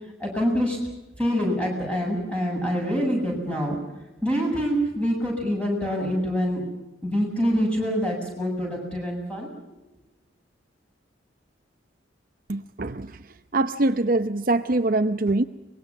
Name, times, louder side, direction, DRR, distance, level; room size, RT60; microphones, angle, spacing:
voice 1, 0.2-0.8 1.2-3.8 4.2-6.6 7.0-9.5, equal, 5° left, 0 dB, 7.7 m, -25 dB
voice 2, 12.5-13.1 13.5-15.4, right 2 dB, 45° right, 9 dB, 0.7 m, -23 dB
24.5 x 21.5 x 7.3 m, 0.99 s
head